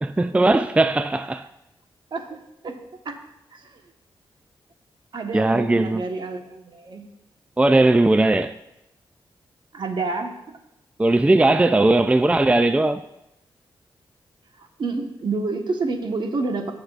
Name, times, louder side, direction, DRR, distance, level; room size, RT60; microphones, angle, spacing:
voice 1, 0.0-1.5 5.3-6.0 7.6-8.5 11.0-13.0, right 2 dB, 15° right, 0.4 m, -18 dB
voice 2, 2.1-2.7 3.0-3.2 3.5-3.8 5.1-7.0 9.7-10.4 14.6-16.7, right 3 dB, 60° right, 1.3 m, -29 dB
17.5 x 6.0 x 2.5 m
cardioid pair, 60°, 9 cm